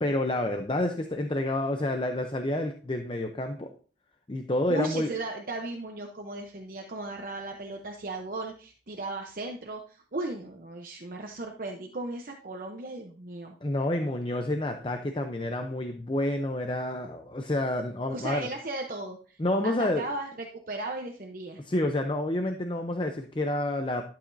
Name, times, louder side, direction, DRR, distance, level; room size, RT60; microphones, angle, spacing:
voice 1, 0.0-3.7 4.3-5.1 13.6-18.5 19.4-20.1 21.6-24.0, left 1 dB, 30° left, 5 dB, 0.6 m, -29 dB
voice 2, 4.7-13.5 18.1-19.4 19.6-21.6, right 2 dB, 50° right, 2 dB, 0.8 m, -36 dB
12.0 x 7.5 x 2.7 m, 0.40 s
head